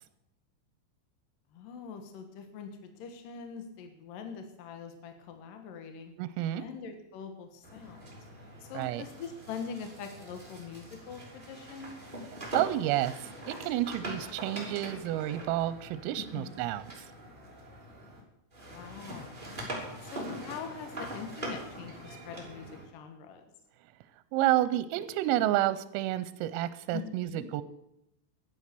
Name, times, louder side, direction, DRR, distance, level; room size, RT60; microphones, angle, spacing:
voice 1, 1.5-6.1 6.6-8.2 8.6-12.0 16.2-16.7 18.7-19.6 20.0-23.5 26.9-27.5, left 6 dB, 80° left, 7 dB, 1.9 m, -43 dB
voice 2, 6.2-6.6 8.7-9.0 12.5-16.8 24.3-27.6, right 14 dB, 85° right, 15 dB, 3.3 m, -30 dB
sound 1, 7.6-18.2 18.5-22.9, right 1 dB, 15° right, 2.0 m, -43 dB
12.5 x 11.0 x 6.7 m, 0.83 s
omnidirectional pair, 5.9 m